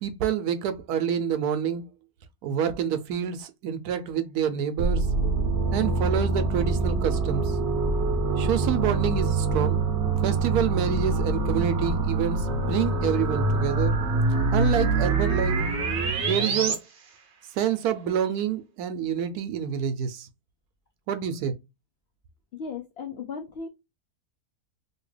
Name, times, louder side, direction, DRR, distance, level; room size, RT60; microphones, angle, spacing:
voice 1, 0.0-1.9 2.4-5.1 5.7-7.6 8.4-9.8 10.2-14.0 14.5-15.6 16.2-16.8 17.5-20.3 21.1-21.5, right 8 dB, 75° right, 1.1 m, -27 dB
sound 1, 4.8-16.8, right 3 dB, 55° right, 0.8 m, -25 dB
voice 2, 22.5-23.7, left 5 dB, 70° left, 0.6 m, -36 dB
2.8 x 2.8 x 3.1 m
omnidirectional pair, 1.7 m